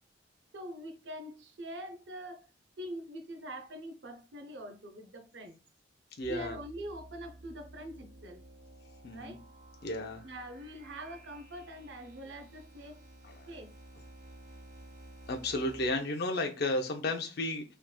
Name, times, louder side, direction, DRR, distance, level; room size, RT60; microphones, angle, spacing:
voice 1, 0.5-2.5 2.8-5.6 6.3-8.4 9.1-9.4 10.2-13.0 13.5-13.7, right 1 dB, 65° right, 0.6 m, -44 dB
voice 2, 6.2-6.6 9.0-9.4 9.8-10.2 15.3-17.6, left 2 dB, 55° left, 0.5 m, -33 dB
sound 1, 6.2-15.9, right 1 dB, 40° right, 1.1 m, -53 dB
3.3 x 2.9 x 2.2 m
head